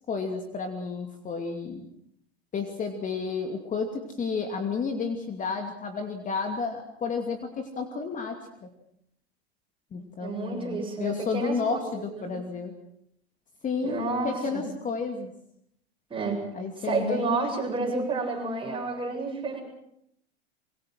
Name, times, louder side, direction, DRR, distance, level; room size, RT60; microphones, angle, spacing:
voice 1, 0.1-1.9 2.5-8.7 9.9-12.7 13.6-15.3 16.5-17.5, left 5 dB, 25° left, 5 dB, 2.6 m, -31 dB
voice 2, 10.2-12.3 13.8-14.6 16.1-16.4 16.8-19.6, right 3 dB, 15° right, 1 dB, 8.0 m, -30 dB
25.5 x 23.0 x 6.3 m, 0.73 s
hypercardioid pair, 110°, 32 cm